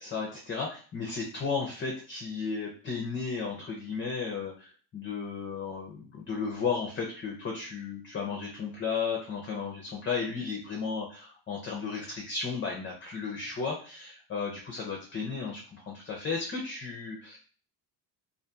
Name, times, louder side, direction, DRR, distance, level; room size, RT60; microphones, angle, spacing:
voice 1, 0.0-17.4, left 5 dB, 25° left, -1 dB, 0.5 m, -34 dB
2.6 x 2.5 x 2.3 m, 0.40 s
cardioid pair, 120°, 49 cm